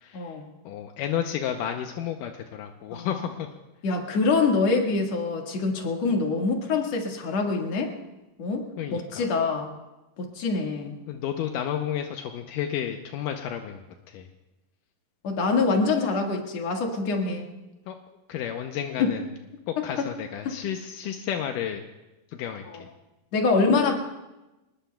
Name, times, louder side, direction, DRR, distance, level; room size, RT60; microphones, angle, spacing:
voice 1, 0.1-0.5 2.9-3.3 3.8-7.9 8.4-9.7 10.2-11.0 15.2-17.5 19.0-19.2 19.8-20.1 20.4-20.6 22.6-22.8 23.3-24.0, left 4 dB, 55° left, 2 dB, 2.8 m, -25 dB
voice 2, 0.7-3.5 8.8-9.3 11.1-13.8 14.1-14.3 17.9-18.0 18.3-19.2 19.7-21.8 22.4-22.6, left 9 dB, 80° left, 4 dB, 2.3 m, -31 dB
25.5 x 20.5 x 2.3 m, 1.0 s
omnidirectional pair, 3.8 m